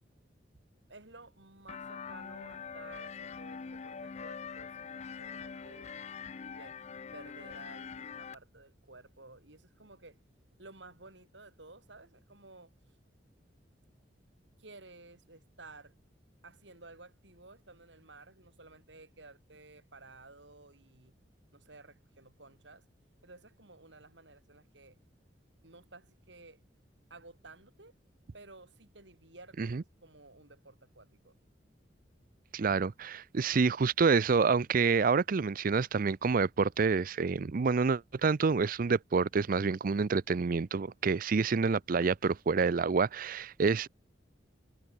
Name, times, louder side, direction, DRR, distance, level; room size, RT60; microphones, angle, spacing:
voice 1, 0.9-5.9 6.5-6.8 7.1-10.2 10.6-12.9 14.6-15.9 16.4-21.2 21.5-22.8 23.2-25.0 25.6-26.6 27.1-27.9 28.3-31.4, right 3 dB, 75° right, 6.5 m, -54 dB
sound 1, 1.7-8.3, left 6 dB, 40° left, 0.4 m, -44 dB
voice 2, 32.5-43.9, right 5 dB, 50° right, 0.5 m, -28 dB
head